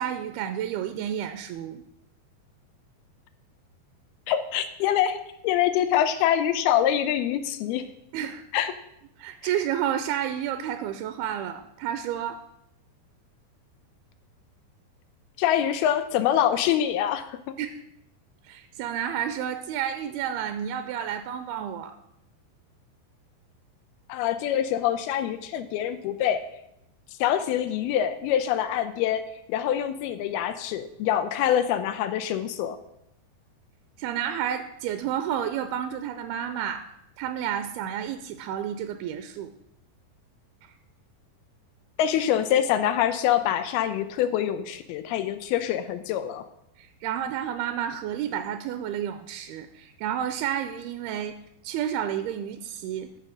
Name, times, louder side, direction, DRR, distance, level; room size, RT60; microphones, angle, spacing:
voice 1, 0.0-1.8 8.1-8.4 9.2-12.4 17.6-17.8 18.5-22.0 34.0-36.8 37.2-39.5 40.6-40.7 46.8-51.4 51.6-53.1, right 10 dB, 80° right, 10 dB, 2.5 m, -30 dB
voice 2, 4.3-7.8 8.5-8.7 15.4-17.4 24.1-26.4 27.2-29.2 29.5-32.8 42.0-46.4, left 10 dB, 80° left, 12 dB, 2.5 m, -25 dB
13.5 x 6.6 x 6.4 m, 0.81 s
omnidirectional pair, 4.7 m